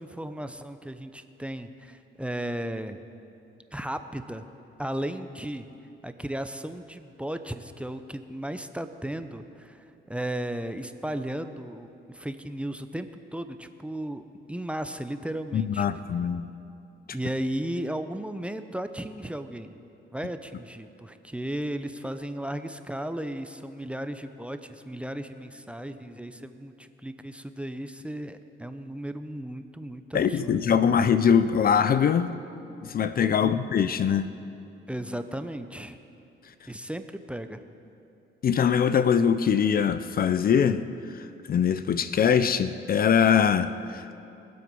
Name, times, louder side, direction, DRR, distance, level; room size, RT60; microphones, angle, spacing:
voice 1, 0.0-3.0 3.7-4.4 4.8-5.7 6.0-14.2 14.5-15.9 17.1-19.7 20.1-30.6 33.4-33.9 34.9-36.0 36.7-37.7, right 1 dB, 5° right, 9 dB, 0.6 m, -35 dB
voice 2, 15.5-16.5 30.1-32.3 32.8-34.3 38.4-40.8 41.1-44.2, left 7 dB, 50° left, 13 dB, 0.6 m, -23 dB
23.0 x 7.8 x 5.4 m, 2.8 s
cardioid pair, 90°, 20 cm